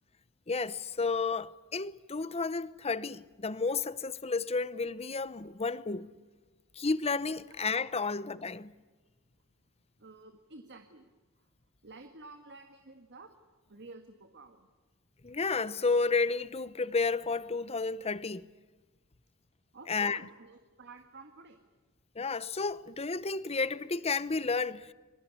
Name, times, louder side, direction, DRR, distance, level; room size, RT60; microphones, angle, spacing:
voice 1, 0.5-6.1 6.8-8.7 15.2-18.5 19.9-20.2 22.2-24.9, left 4 dB, 30° left, 0.8 m, -31 dB
voice 2, 10.0-11.1 11.8-13.3 13.7-14.7 19.7-21.6, right 3 dB, 55° right, 1.8 m, -50 dB
27.0 x 22.5 x 8.4 m
head